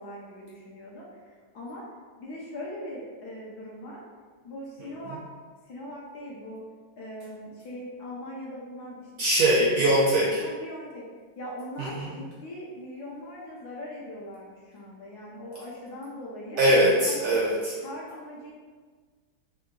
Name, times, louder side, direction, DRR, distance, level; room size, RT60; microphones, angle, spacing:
voice 1, 0.0-1.8 2.2-4.0 4.4-5.2 5.6-6.6 7.0-9.1 10.4-11.1 11.4-16.6 17.1-17.5 17.8-18.5, left 1 dB, 70° left, -4 dB, 1.1 m, -40 dB
voice 2, 9.2-10.4 11.8-12.1 16.6-17.7, right 1 dB, 70° right, -4 dB, 0.9 m, -22 dB
3.7 x 2.6 x 3.6 m, 1.5 s
omnidirectional pair, 2.1 m